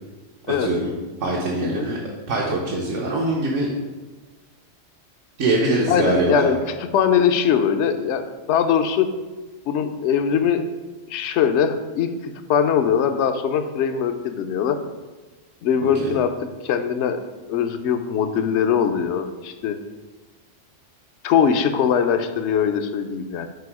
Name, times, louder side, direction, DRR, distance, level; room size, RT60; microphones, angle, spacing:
voice 1, 0.6-0.9 1.2-2.0 2.3-3.7 5.4-6.5 16.0-16.1, right 2 dB, 75° right, -3 dB, 1.3 m, -22 dB
voice 2, 5.9-6.6 6.9-8.2 8.5-9.1 9.7-10.6 11.1-14.8 15.6-16.3 16.6-17.2 17.5-19.8 21.2-23.5, left 7 dB, 70° left, 8 dB, 0.9 m, -21 dB
6.8 x 4.4 x 4.7 m, 1.2 s
omnidirectional pair, 1.3 m